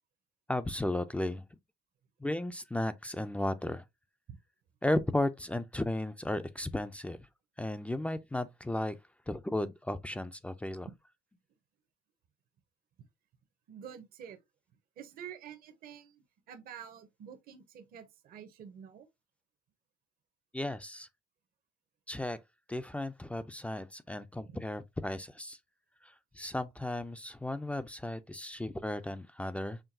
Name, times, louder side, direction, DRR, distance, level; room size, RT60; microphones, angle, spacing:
voice 1, 0.5-1.4 2.2-3.8 4.8-7.2 7.6-9.0 9.3-10.9 20.5-21.1 22.1-22.4 22.7-25.6 26.0-29.8, left 1 dB, 10° left, 0.3 m, -35 dB
voice 2, 13.7-14.4 15.0-19.1 24.4-24.6, right 8 dB, 60° right, 0.8 m, -48 dB
5.7 x 2.3 x 2.6 m
cardioid pair, 110°, 17 cm